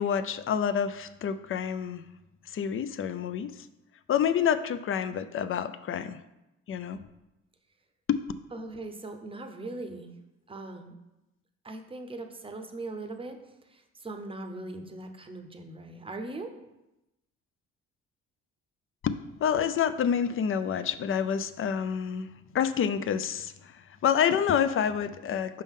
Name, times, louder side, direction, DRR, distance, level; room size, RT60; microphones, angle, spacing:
voice 1, 0.0-2.0 2.5-3.6 4.1-6.2 6.7-7.0 8.1-8.2 19.0-22.3 22.5-25.6, left 8 dB, 45° left, 12 dB, 0.4 m, -28 dB
voice 2, 8.5-10.1 10.5-11.0 11.6-16.5, right 2 dB, 20° right, 6 dB, 0.7 m, -40 dB
5.4 x 5.2 x 3.6 m, 0.95 s
cardioid pair, 90°, 30 cm